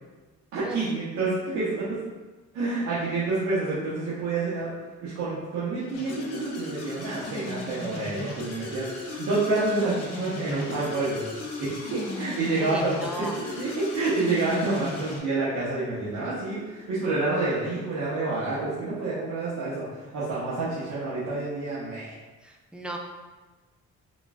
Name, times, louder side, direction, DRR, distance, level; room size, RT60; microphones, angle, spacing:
voice 1, 0.5-2.0 2.5-4.7 5.0-11.2 11.6-22.1, right 3 dB, 75° right, -10 dB, 1.1 m, -28 dB
Synth Loop - Wobble Wars II, 5.9-15.2, left 3 dB, 55° left, 1.1 m, -37 dB
voice 2, 12.6-13.3 22.4-23.0, right 1 dB, 5° right, 0 dB, 0.5 m, -36 dB
3.7 x 3.5 x 2.5 m, 1.2 s
cardioid pair, 90°, 30 cm